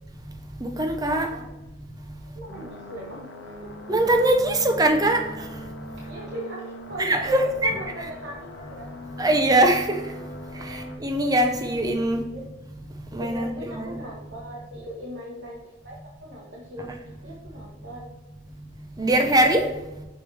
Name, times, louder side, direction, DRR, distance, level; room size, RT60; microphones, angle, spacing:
voice 1, 0.6-1.3 3.9-5.2 7.0-7.7 9.2-10.0 10.7-12.2 13.1-13.9 19.0-19.6, right 1 dB, 20° right, 4 dB, 0.6 m, -21 dB
voice 2, 2.3-3.7 6.0-8.8 12.3-12.5 13.2-18.1, right 1 dB, 55° right, -4 dB, 1.1 m, -38 dB
sound 1, 2.5-11.0, left 1 dB, 60° left, 0.9 m, -41 dB
6.2 x 4.6 x 3.3 m, 1.1 s
head